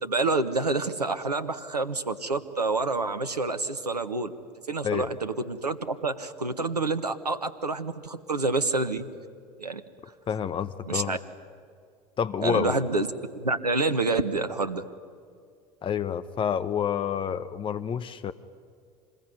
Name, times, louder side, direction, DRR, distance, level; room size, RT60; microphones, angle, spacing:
voice 1, 0.0-4.3 4.7-9.0 9.6-9.8 10.9-11.2 12.4-13.1 13.3-14.8, right 3 dB, 85° right, 9 dB, 1.2 m, -28 dB
voice 2, 10.3-11.2 12.2-12.8 15.8-18.3, left 8 dB, 25° left, 13 dB, 0.9 m, -28 dB
26.5 x 21.5 x 9.6 m, 2.2 s
figure-of-eight pair, 70°, 20 cm